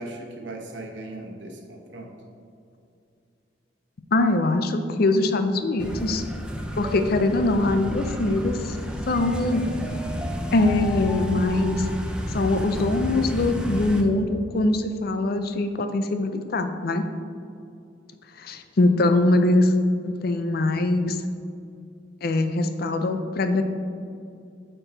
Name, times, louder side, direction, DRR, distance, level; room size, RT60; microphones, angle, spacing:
voice 1, 0.0-2.1, right 2 dB, 75° right, 2 dB, 1.0 m, -38 dB
voice 2, 4.1-6.2 6.8-8.8 9.1-9.7 10.5-11.9 12.3-17.0 18.4-19.7 20.0-21.2 22.2-23.6, left 2 dB, 55° left, 8 dB, 0.5 m, -22 dB
sound 1, 5.8-14.0, equal, 5° right, 0.5 m, -31 dB
8.7 x 4.5 x 3.9 m, 2.5 s
head